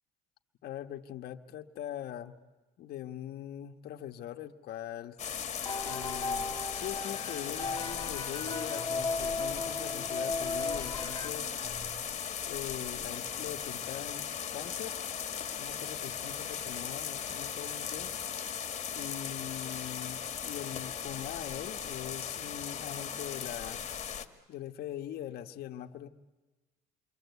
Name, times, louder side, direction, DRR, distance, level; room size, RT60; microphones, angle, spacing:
voice 1, 0.6-2.4 2.8-5.2 5.8-11.5 12.5-15.0 15.6-18.1 18.9-23.8 24.5-26.1, left 11 dB, 70° left, 6 dB, 1.3 m, -42 dB
sound 1, 5.2-24.3, left 8 dB, 40° left, 1.7 m, -37 dB
sound 2, 5.7-11.3, left 3 dB, 20° left, 2.7 m, -36 dB
sound 3, 6.6-13.7, right 4 dB, 50° right, 7.3 m, -54 dB
28.0 x 23.5 x 8.2 m, 1.2 s
cardioid pair, 110°, 17 cm